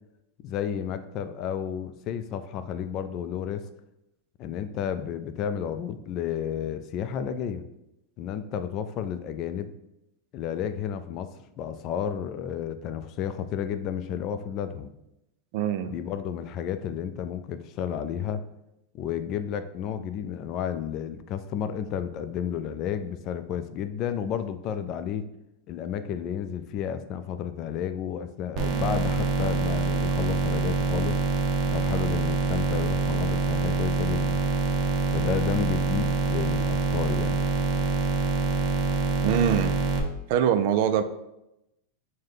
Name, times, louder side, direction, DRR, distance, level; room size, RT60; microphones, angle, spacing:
voice 1, 0.4-3.7 4.4-7.7 8.2-9.7 10.3-14.9 15.9-18.4 18.9-25.3 25.7-31.2 31.7-34.4 35.1-37.4, left 8 dB, 45° left, 10 dB, 0.3 m, -32 dB
voice 2, 15.5-15.9 39.2-39.8 40.3-41.0, right 9 dB, 60° right, 10 dB, 0.3 m, -23 dB
sound 1, 28.6-40.0, right 3 dB, 40° right, 0.7 m, -25 dB
4.9 x 2.1 x 3.9 m, 0.87 s
supercardioid pair, 125°, 0 cm